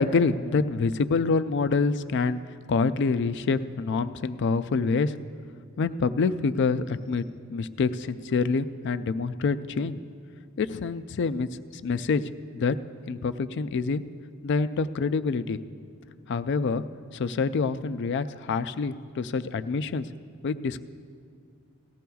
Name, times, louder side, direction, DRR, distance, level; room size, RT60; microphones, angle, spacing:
voice 1, 0.0-2.4 2.7-5.1 5.8-7.2 7.5-10.0 10.6-12.2 12.5-12.8 13.1-14.0 14.4-15.6 16.3-16.8 17.1-20.1 20.4-20.8, left 4 dB, 55° left, 13 dB, 0.4 m, -26 dB
18.5 x 15.5 x 2.3 m, 2.2 s
head